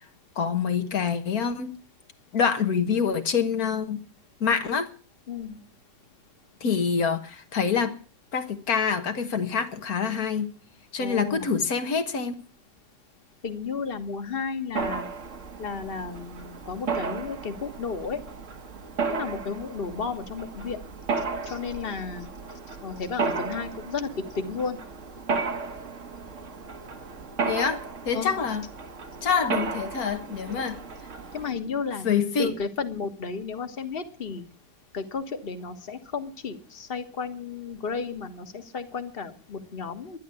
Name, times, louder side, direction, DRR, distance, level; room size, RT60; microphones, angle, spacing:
voice 1, 0.4-1.7 2.3-4.0 4.4-4.9 6.6-8.0 8.3-10.5 10.9-12.3 27.5-28.6 29.2-30.8 32.0-32.5, left 6 dB, 65° left, 1.7 m, -26 dB
voice 2, 5.3-5.6 11.0-11.5 13.4-15.1 15.6-18.2 19.1-20.8 21.4-22.3 22.8-24.8 28.1-28.5 31.3-32.1 32.4-34.4 34.9-40.2, left 5 dB, 35° left, 1.6 m, -33 dB
Mechanisms, 14.7-31.5, right 4 dB, 50° right, 1.5 m, -34 dB
11.5 x 11.0 x 8.4 m
omnidirectional pair, 1.7 m